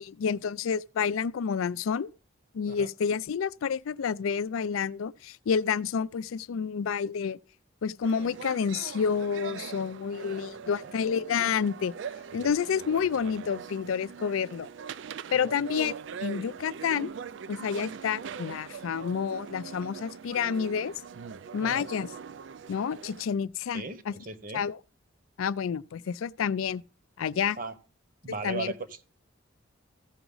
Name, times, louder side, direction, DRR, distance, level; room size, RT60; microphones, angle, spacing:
voice 1, 0.0-2.1 2.5-7.4 7.8-11.9 12.3-14.7 15.3-15.9 16.2-17.1 17.5-20.9 21.5-22.1 22.7-24.1 24.5-24.8 25.4-26.8 27.2-27.6 28.4-28.7, left 6 dB, 85° left, 0.4 m, -29 dB
sound 1, 8.0-23.3, right 6 dB, 65° right, 0.4 m, -42 dB
voice 2, 10.6-10.9 15.3-15.6 21.6-21.9 23.7-24.6 27.6-27.7 28.2-29.1, right 3 dB, 40° right, 0.9 m, -37 dB
15.0 x 5.9 x 3.9 m
head